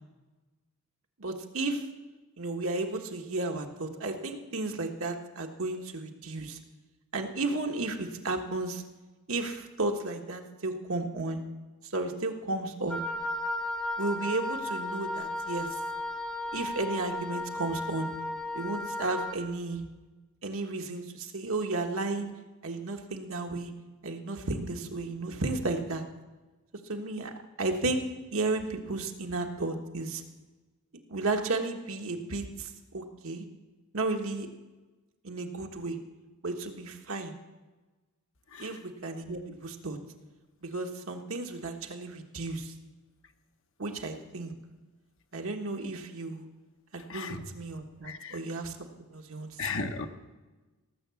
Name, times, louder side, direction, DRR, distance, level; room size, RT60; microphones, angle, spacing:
voice 1, 1.2-1.8 2.4-6.6 7.1-8.8 9.3-11.4 11.9-13.0 14.0-15.7 16.5-18.1 18.5-19.8 20.4-22.3 22.6-23.7 24.0-26.0 26.9-27.3 27.6-28.0 28.3-30.2 31.1-33.4 33.9-34.5 35.2-36.0 36.4-37.3 38.6-40.0 40.6-42.7 43.8-44.5 45.3-46.5 46.9-49.5, right 2 dB, 65° right, 4 dB, 1.3 m, -33 dB
Wind instrument woodwind instrument, 12.9-19.4, left 1 dB, 5° left, 0.9 m, -35 dB
voice 2, 47.1-47.4 48.0-48.4 49.6-50.1, left 4 dB, 65° left, 6 dB, 1.1 m, -35 dB
17.0 x 7.4 x 7.0 m, 1.2 s
head